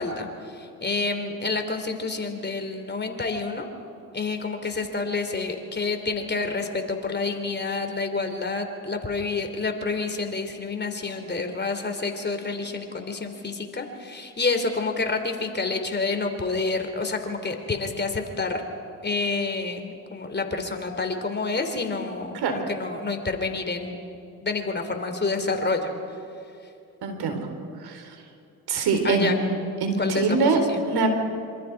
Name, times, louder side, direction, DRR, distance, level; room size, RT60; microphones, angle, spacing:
voice 1, 0.0-3.7 4.1-18.6 19.0-24.0 24.4-25.9 29.0-29.4 30.0-30.8, left 3 dB, 25° left, 6 dB, 3.3 m, -28 dB
voice 2, 27.0-27.4 27.8-28.1 28.7-29.3 29.8-30.6 30.9-31.1, right 4 dB, 65° right, 5 dB, 4.1 m, -23 dB
26.5 x 26.0 x 4.8 m, 2.6 s
hypercardioid pair, 60°, 41 cm